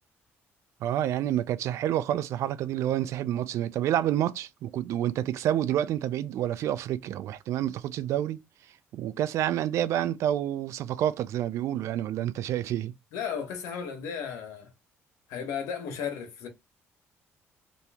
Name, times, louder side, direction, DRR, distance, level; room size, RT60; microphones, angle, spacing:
voice 1, 0.8-8.4 8.9-12.9, right 11 dB, 70° right, 0.4 m, -28 dB
voice 2, 13.1-14.7 15.3-16.5, left 7 dB, 90° left, 1.3 m, -34 dB
3.0 x 2.7 x 3.4 m
cardioid pair, 110°, 5 cm